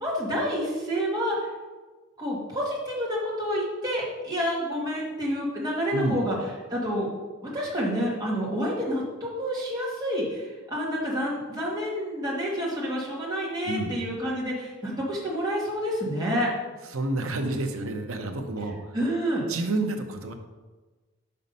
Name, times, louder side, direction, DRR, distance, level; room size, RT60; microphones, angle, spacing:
voice 1, 0.0-1.5 2.2-6.4 6.7-7.1 7.4-16.5 18.9-19.4, equal, 20° right, -5 dB, 1.9 m, -28 dB
voice 2, 16.9-19.0 19.5-20.3, right 2 dB, 80° right, 5 dB, 0.8 m, -29 dB
5.6 x 5.2 x 5.4 m, 1.3 s
head